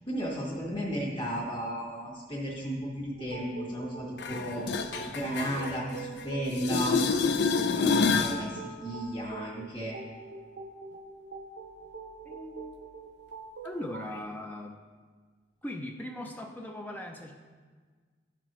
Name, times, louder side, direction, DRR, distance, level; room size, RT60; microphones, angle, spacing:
voice 1, 0.1-7.1 7.7-10.0, equal, 30° left, -4 dB, 1.5 m, -34 dB
sound 1, 3.1-14.2, right 5 dB, 75° right, 0.8 m, -45 dB
sound 2, 4.2-6.2 6.5-8.4 14.2-14.3, left 5 dB, 65° left, 0.5 m, -28 dB
voice 2, 12.2-12.8 13.6-14.8 15.6-17.3, left 1 dB, 10° left, 2 dB, 0.4 m, -39 dB
11.0 x 6.0 x 3.0 m, 1.5 s
head